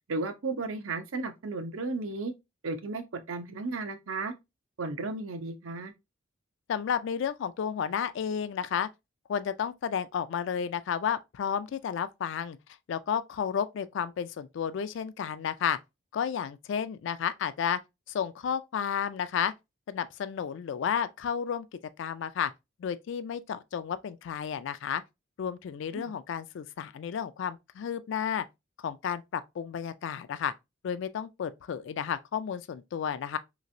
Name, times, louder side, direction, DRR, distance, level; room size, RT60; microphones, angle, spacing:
voice 1, 0.1-2.3 2.6-4.3 4.8-5.9 25.9-26.1, right 3 dB, 85° right, 0.6 m, -34 dB
voice 2, 6.7-8.9 9.3-12.6 12.9-15.8 16.1-17.8 18.1-19.5 19.9-21.7 22.0-22.5 22.8-25.0 25.4-28.5 28.8-30.5 30.8-33.4, left 8 dB, 65° left, 0.3 m, -32 dB
3.2 x 3.0 x 2.6 m
head